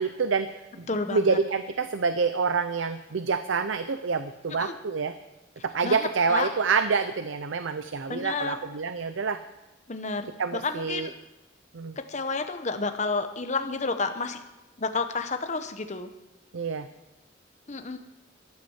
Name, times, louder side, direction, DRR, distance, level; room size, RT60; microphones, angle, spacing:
voice 1, 0.0-5.1 5.6-9.4 10.4-11.1 11.7-12.0 16.5-16.9, right 5 dB, 85° right, 11 dB, 0.6 m, -27 dB
voice 2, 0.9-1.4 4.6-4.7 5.8-6.5 8.1-8.6 9.9-11.1 12.0-14.4 14.8-16.1 17.7-18.0, left 4 dB, 40° left, 8 dB, 1.0 m, -30 dB
13.0 x 9.3 x 7.3 m, 1.0 s
head